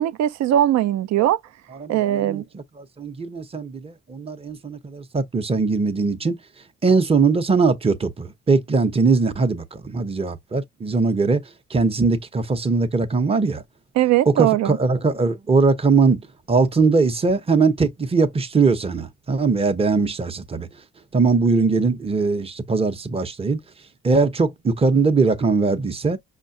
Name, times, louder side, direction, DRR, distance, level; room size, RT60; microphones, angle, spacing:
voice 1, 0.0-1.4 1.9-2.4 14.0-14.8, right 12 dB, 65° right, 0.4 m, -20 dB
voice 2, 1.8-2.6 3.0-6.4 6.8-11.4 11.7-13.6 14.3-16.2 16.5-20.7 21.1-23.6 24.0-26.2, right 4 dB, 20° right, 0.7 m, -20 dB
5.5 x 2.2 x 2.6 m
cardioid pair, 90°, 30 cm